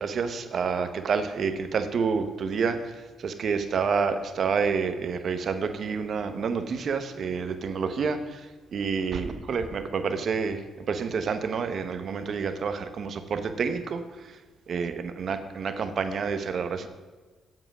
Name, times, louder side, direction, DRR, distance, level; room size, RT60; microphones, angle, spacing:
voice 1, 0.0-2.8 3.2-8.2 8.7-10.6 10.9-14.0 14.7-14.9 15.2-16.9, right 5 dB, 55° right, 9 dB, 0.9 m, -28 dB
7.6 x 7.6 x 6.0 m, 1.3 s
cardioid pair, 90°, 0 cm